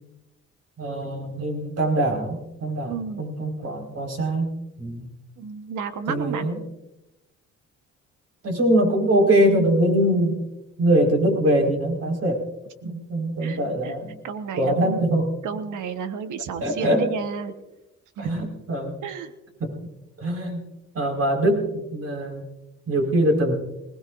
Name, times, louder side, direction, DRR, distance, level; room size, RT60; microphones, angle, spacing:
voice 1, 0.8-4.5 4.8-5.1 6.1-6.6 8.4-10.4 10.8-12.4 12.8-14.2 14.6-15.3 16.6-17.1 18.2-18.9 19.6-19.7 20.2-20.6 20.9-22.4 22.9-23.5, right 1 dB, 50° right, 1 dB, 4.9 m, -23 dB
voice 2, 2.8-3.2 5.4-6.5 12.8-13.0 13.4-14.0 14.2-15.0 15.4-17.5 18.2-18.5 18.8-19.3, right 6 dB, 80° right, 9 dB, 1.3 m, -32 dB
21.0 x 20.0 x 2.6 m, 0.93 s
cardioid pair, 90°, 30 cm